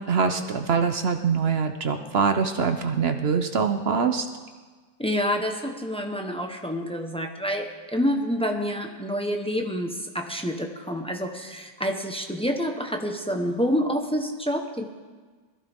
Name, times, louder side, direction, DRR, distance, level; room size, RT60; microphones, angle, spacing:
voice 1, 0.0-4.3, right 5 dB, 60° right, 6 dB, 0.6 m, -24 dB
voice 2, 5.0-14.9, equal, 5° left, 3 dB, 0.6 m, -28 dB
21.0 x 15.0 x 3.6 m, 1.4 s
omnidirectional pair, 2.0 m